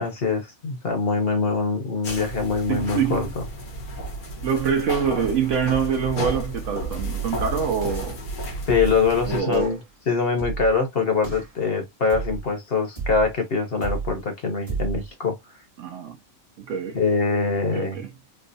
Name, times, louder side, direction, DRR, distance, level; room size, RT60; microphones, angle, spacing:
voice 1, 0.0-3.3 8.7-9.8 10.1-15.3 16.9-18.0, left 4 dB, 50° left, 1.0 m, -23 dB
sound 1, 2.0-9.4, right 1 dB, 85° left, 1.6 m, -32 dB
voice 2, 2.7-3.3 4.4-8.2 9.3-9.8 15.8-16.2 16.6-17.0 17.7-18.1, right 7 dB, 65° right, 0.9 m, -25 dB
sound 2, 7.0-7.4 7.8-8.2 8.7-9.1 9.5-9.8 10.4-10.8 11.2-11.6 12.1-12.5 13.0-13.4 13.8-14.2 14.7-15.1, right 5 dB, 30° right, 1.1 m, -32 dB
4.5 x 2.0 x 2.6 m
omnidirectional pair, 1.5 m